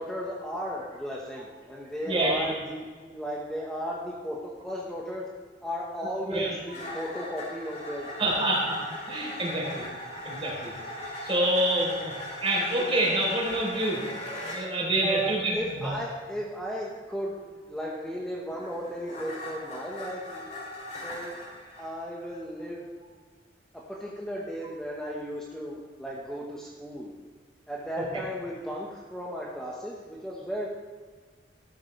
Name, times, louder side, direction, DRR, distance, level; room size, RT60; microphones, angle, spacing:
voice 1, 0.0-5.3 5.6-8.5 15.0-17.4 17.7-20.5 21.0-21.4 21.8-22.9 23.7-27.1 27.7-30.7, equal, 5° left, -4 dB, 1.3 m, -35 dB
voice 2, 2.0-2.5 6.2-6.5 8.2-8.8 9.1-9.8 10.2-10.7 11.2-12.1 12.4-14.0 14.4-16.0 28.0-28.1, right 1 dB, 30° right, -3 dB, 3.8 m, -27 dB
sound 1, 6.7-14.7 18.0-21.9, left 1 dB, 40° left, 3.5 m, -39 dB
13.5 x 13.0 x 3.3 m, 1.5 s
head